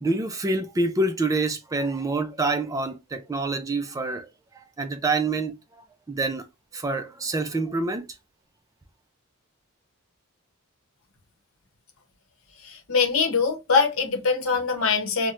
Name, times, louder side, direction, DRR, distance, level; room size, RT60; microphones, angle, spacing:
voice 1, 0.0-4.3 4.5-5.5 6.1-6.5 6.7-8.1, right 3 dB, 15° right, 0.3 m, -26 dB
voice 2, 12.6-15.3, left 5 dB, 75° left, 0.9 m, -23 dB
4.2 x 2.1 x 2.4 m
head